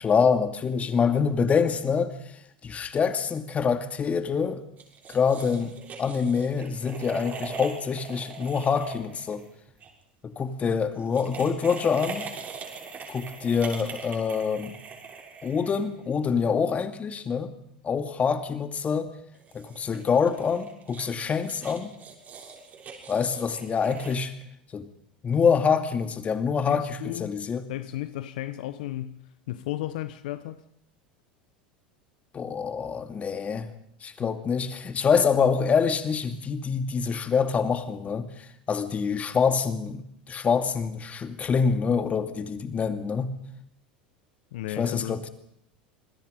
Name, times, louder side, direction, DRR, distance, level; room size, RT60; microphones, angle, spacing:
voice 1, 0.0-2.1 2.6-4.6 5.1-5.7 6.0-9.4 10.2-12.3 13.1-14.7 15.4-17.5 17.8-19.1 19.5-22.0 23.1-24.3 24.7-24.9 25.2-27.7 32.3-33.7 34.0-38.3 38.7-43.4 44.8-45.3, left 6 dB, 30° left, 2.4 m, -25 dB
sound 1, 4.8-9.9 11.0-16.2 19.3-24.1, right 5 dB, 35° right, 7.1 m, -41 dB
voice 2, 26.7-27.3 27.7-29.2 29.5-30.6 34.2-34.3 44.5-45.2, left 14 dB, 70° left, 1.1 m, -34 dB
27.0 x 21.0 x 5.3 m
hypercardioid pair, 85°, 5 cm